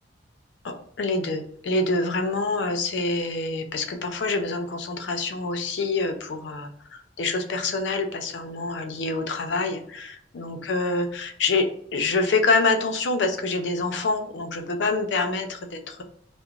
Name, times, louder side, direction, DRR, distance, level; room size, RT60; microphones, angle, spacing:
voice 1, 0.6-6.7 7.2-11.7 11.9-16.0, left 3 dB, 70° left, 6 dB, 0.5 m, -26 dB
2.9 x 2.0 x 2.3 m, 0.65 s
head